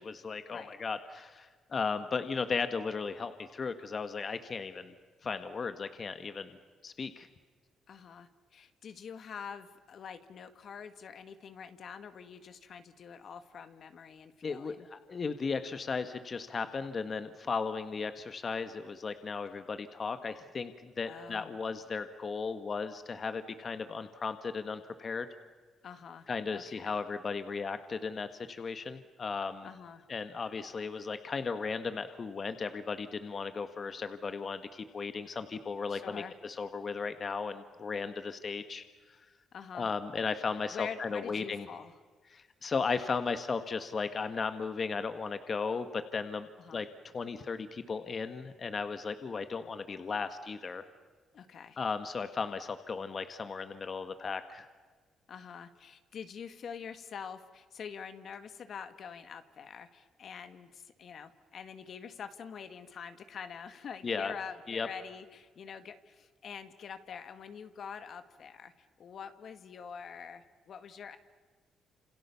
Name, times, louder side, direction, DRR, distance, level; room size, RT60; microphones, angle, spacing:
voice 1, 0.0-4.9 5.2-6.6 6.8-7.3 14.4-25.3 26.3-29.7 30.1-38.8 39.1-39.2 39.7-41.7 42.3-46.9 47.1-50.8 51.8-54.7 64.0-64.3 64.7-64.9, left 5 dB, 40° left, 9 dB, 1.6 m, -36 dB
voice 2, 7.9-14.9 21.0-21.6 25.8-27.0 29.6-30.1 35.9-36.3 39.5-39.9 40.7-41.9 46.6-46.8 51.3-51.8 55.3-71.2, left 7 dB, 60° left, 10 dB, 1.9 m, -45 dB
29.5 x 28.0 x 7.1 m, 1.5 s
cardioid pair, 90°, 0 cm